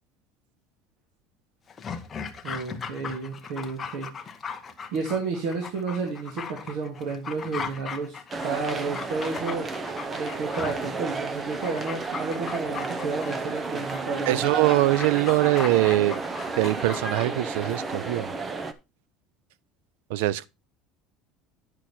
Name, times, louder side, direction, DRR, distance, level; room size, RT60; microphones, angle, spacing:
Dog, 1.7-17.9 18.2-18.3, left 6 dB, 15° left, 0.8 m, -38 dB
voice 1, 2.4-4.1 4.9-9.7 10.1-14.6, right 4 dB, 60° right, 2.3 m, -31 dB
sound 1, 8.3-18.7, right 3 dB, 15° right, 0.6 m, -32 dB
voice 2, 14.3-16.2 16.5-18.3 20.1-20.5, right 17 dB, 85° right, 0.5 m, -23 dB
9.7 x 6.2 x 4.2 m
cardioid pair, 180°, 0 cm